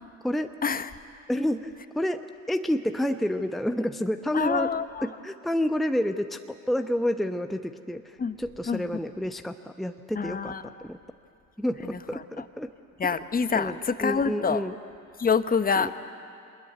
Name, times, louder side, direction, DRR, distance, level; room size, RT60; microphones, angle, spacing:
voice 1, 1.3-4.7 5.0-11.0 11.6-12.7 13.5-14.8 15.8-15.9, equal, ahead, 7 dB, 1.0 m, -29 dB
voice 2, 4.3-5.1 8.2-8.3 8.7-8.8 10.1-10.6 11.8-12.0 12.4-12.5 13.0-14.6 15.2-15.9, left 5 dB, 20° left, 11 dB, 1.2 m, -26 dB
26.0 x 21.5 x 9.5 m, 2.5 s
hypercardioid pair, 70°, 41 cm